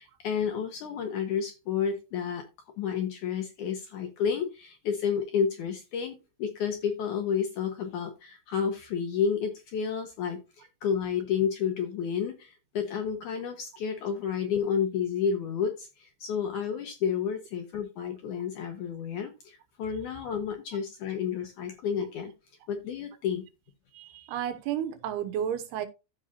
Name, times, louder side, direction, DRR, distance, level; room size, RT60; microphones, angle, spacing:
voice 1, 0.0-2.4 2.8-22.3 22.7-23.5, left 7 dB, 75° left, 1.8 m, -31 dB
voice 2, 23.9-25.9, right 9 dB, 85° right, 3.0 m, -32 dB
15.0 x 5.0 x 2.7 m
omnidirectional pair, 4.5 m